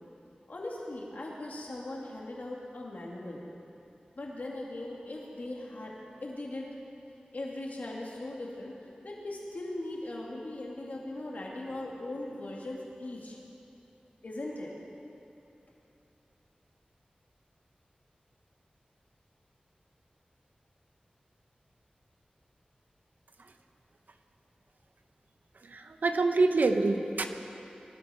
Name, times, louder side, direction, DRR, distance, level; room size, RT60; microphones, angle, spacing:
voice 1, 0.5-3.4 4.2-5.9 6.2-6.7 7.3-8.8 9.0-13.4 14.2-14.7, left 1 dB, 65° left, -3 dB, 2.2 m, -39 dB
voice 2, 25.6-27.3, right 3 dB, 80° right, 6 dB, 0.8 m, -26 dB
21.0 x 12.5 x 4.4 m, 2.8 s
wide cardioid pair, 75°, 3 cm